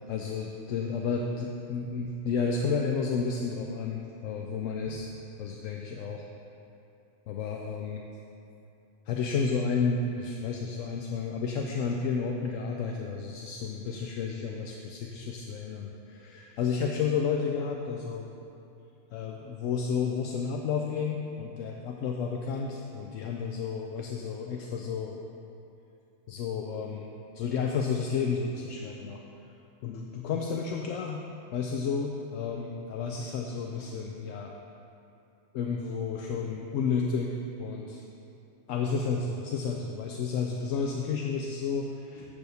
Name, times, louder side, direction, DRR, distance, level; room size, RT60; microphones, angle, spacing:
voice 1, 0.1-5.1 5.4-6.3 7.3-8.0 9.1-18.3 19.1-25.2 26.3-27.1 27.3-29.2 29.8-31.2 31.5-34.5 35.5-38.0 38.7-42.3, left 5 dB, 80° left, 1 dB, 0.9 m, -31 dB
10.5 x 3.5 x 6.8 m, 2.7 s
omnidirectional pair, 1.3 m